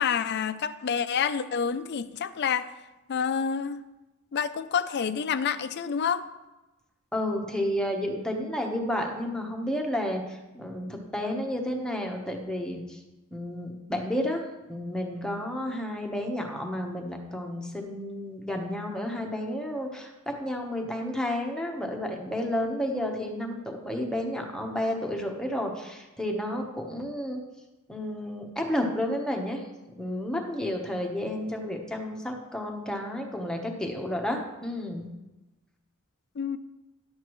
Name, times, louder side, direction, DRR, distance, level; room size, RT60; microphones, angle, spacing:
voice 1, 0.0-2.7 3.1-3.8 4.3-6.3 36.4-36.6, left 7 dB, 55° left, 13 dB, 0.4 m, -28 dB
voice 2, 7.1-13.0 13.3-14.4 14.7-27.4 27.9-29.6 30.0-35.1, left 1 dB, 5° left, 1 dB, 1.0 m, -31 dB
11.0 x 8.1 x 3.1 m, 1.0 s
head